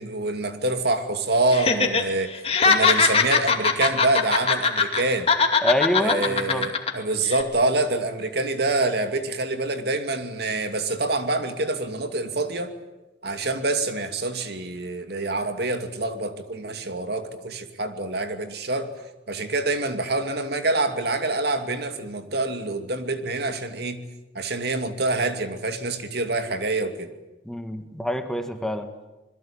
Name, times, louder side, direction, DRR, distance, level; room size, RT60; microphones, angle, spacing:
voice 1, 0.0-2.3 2.6-5.3 6.0-12.7 13.2-18.9 19.3-24.0 24.3-27.1, right 2 dB, 65° right, 7 dB, 2.6 m, -26 dB
Laughter, 1.5-2.0 2.3-5.0 5.3-6.9 7.3-7.4, left 5 dB, 35° left, 2.6 m, -20 dB
voice 2, 5.6-6.7 27.4-28.9, equal, 5° left, 7 dB, 1.7 m, -26 dB
27.0 x 21.5 x 8.9 m, 1.1 s
head